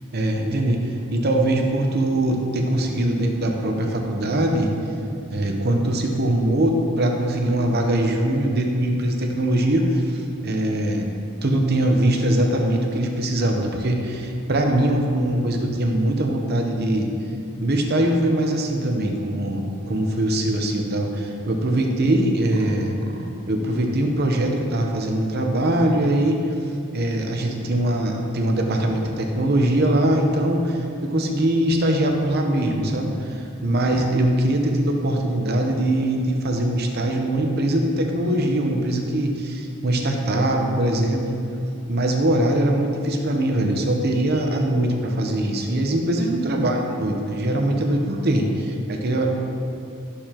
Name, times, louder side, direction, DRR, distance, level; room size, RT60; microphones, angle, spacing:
voice 1, 0.1-4.7 5.3-11.1 11.4-17.1 17.6-26.5 26.9-41.3 41.9-49.3, right 1 dB, 45° right, 2 dB, 0.8 m, -22 dB
12.5 x 6.7 x 2.9 m, 2.6 s
head